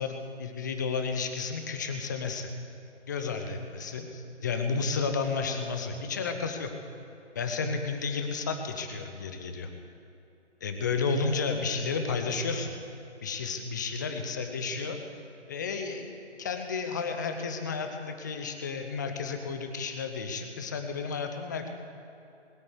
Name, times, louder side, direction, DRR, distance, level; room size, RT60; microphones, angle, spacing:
voice 1, 0.0-2.5 3.1-6.7 7.3-9.7 10.6-12.7 13.2-15.0 15.5-16.1 16.4-21.7, left 4 dB, 15° left, 5 dB, 0.7 m, -32 dB
20.5 x 8.7 x 8.2 m, 2.8 s
figure-of-eight pair, 150°, 35 cm